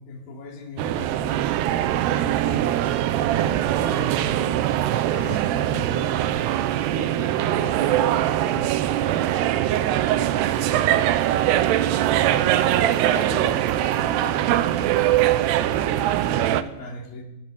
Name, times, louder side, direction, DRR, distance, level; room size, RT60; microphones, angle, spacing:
voice 1, 0.0-1.6 2.1-2.9 3.3-6.6 6.9-11.5 12.2-17.2, left 2 dB, 60° left, 1 dB, 4.8 m, -38 dB
sound 1, 0.8-16.6, right 12 dB, 90° right, 3.1 m, -22 dB
24.5 x 20.5 x 7.1 m, 0.89 s
omnidirectional pair, 4.6 m